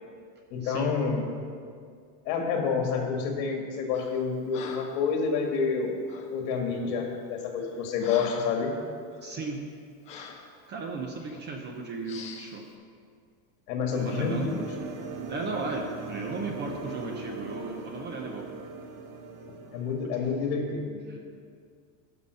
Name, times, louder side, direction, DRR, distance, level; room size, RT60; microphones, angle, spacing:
voice 1, 0.5-1.3 2.3-5.9 6.3-8.7 13.7-14.7 19.7-21.0, left 5 dB, 60° left, 2 dB, 2.1 m, -28 dB
Breathing, 3.9-4.2 4.5-5.0 6.1-6.3 7.0-7.2 7.6-8.6 9.1-9.3 10.1-10.5 11.2-11.4 12.1-12.5, left 5 dB, 15° left, 0.3 m, -43 dB
voice 2, 9.2-9.6 10.7-12.6 14.0-14.6 15.3-18.5 21.1-21.2, right 3 dB, 20° right, 2 dB, 0.7 m, -35 dB
sound 1, 13.9-20.5, right 4 dB, 65° right, 1.5 m, -40 dB
11.0 x 6.0 x 6.5 m, 2.1 s
supercardioid pair, 150°, 49 cm